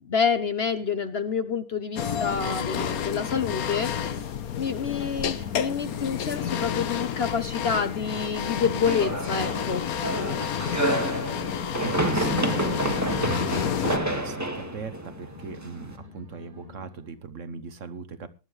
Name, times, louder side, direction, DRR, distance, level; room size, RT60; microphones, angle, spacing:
voice 1, 0.1-4.3 4.6-9.9, left 6 dB, 50° left, 11 dB, 0.9 m, -28 dB
sound 1, 1.9-3.6 3.8-7.6 7.8-11.6 11.8-15.6 15.8-17.2, left 4 dB, 30° right, 7.9 m, -47 dB
sound 2, 2.0-14.0, left 8 dB, 65° left, 1.3 m, -30 dB
sound 3, 8.9-15.9, right 1 dB, 10° right, 1.7 m, -29 dB
voice 2, 11.8-18.3, right 5 dB, 55° right, 12 dB, 1.2 m, -39 dB
19.0 x 11.0 x 3.2 m, 0.30 s
omnidirectional pair, 1.7 m